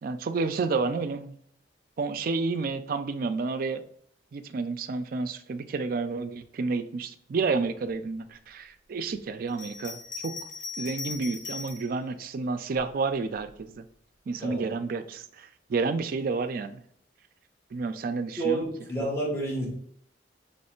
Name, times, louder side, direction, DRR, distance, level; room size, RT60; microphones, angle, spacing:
voice 1, 0.0-1.4 2.0-3.8 4.3-10.3 10.8-13.8 14.3-16.8 17.7-18.6, right 4 dB, 50° right, 10 dB, 0.3 m, -30 dB
Bell, 9.5-11.9 12.7-13.6, left 5 dB, 45° left, 0.7 m, -39 dB
voice 2, 18.4-19.7, right 2 dB, 15° left, -4 dB, 1.1 m, -29 dB
3.2 x 3.0 x 4.3 m, 0.68 s
head